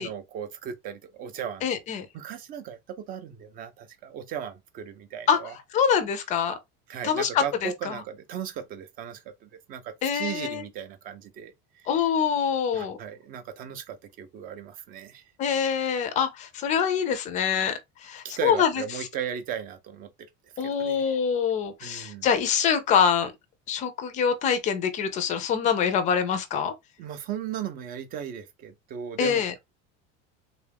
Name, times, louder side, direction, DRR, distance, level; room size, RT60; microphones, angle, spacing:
voice 1, 0.0-1.7 2.1-5.5 6.9-11.5 12.7-15.2 18.2-20.1 20.6-21.2 21.8-22.3 27.0-29.4, right 9 dB, 30° right, 0.5 m, -36 dB
voice 2, 1.6-2.1 5.3-5.4 5.7-6.6 7.0-7.9 10.0-10.7 11.9-13.0 15.4-19.1 20.6-23.3 23.7-26.7 29.2-29.5, left 7 dB, 25° left, 0.4 m, -25 dB
3.6 x 2.3 x 3.3 m
cardioid pair, 180°, 29 cm